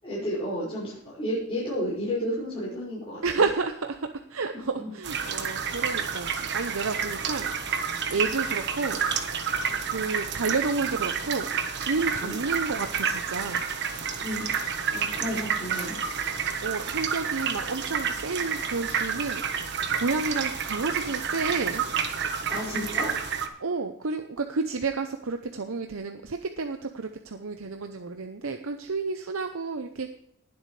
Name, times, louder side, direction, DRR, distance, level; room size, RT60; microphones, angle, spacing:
voice 1, 0.0-3.2 4.8-4.9 12.2-12.4 14.2-16.0 22.5-23.1, equal, 25° left, -8 dB, 5.9 m, -32 dB
voice 2, 3.2-9.3 9.9-13.6 16.6-21.8 23.6-30.1, right 4 dB, 75° right, 6 dB, 0.8 m, -31 dB
sound 1, 5.0-23.5, right 6 dB, 55° right, 1.3 m, -30 dB
20.0 x 8.0 x 3.3 m, 0.71 s
head